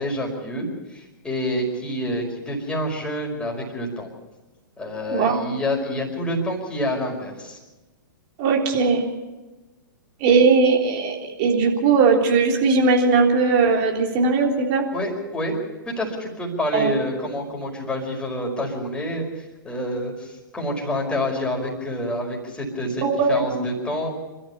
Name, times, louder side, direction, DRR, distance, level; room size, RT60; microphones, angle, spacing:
voice 1, 0.0-4.1 4.8-7.6 14.9-15.6 15.8-24.1, left 1 dB, 10° left, 0 dB, 5.3 m, -27 dB
voice 2, 8.4-9.0 10.2-14.8 16.7-16.9 23.0-23.7, right 4 dB, 35° right, 1 dB, 3.6 m, -19 dB
27.5 x 13.5 x 7.0 m, 1.1 s
figure-of-eight pair, 110°, 11 cm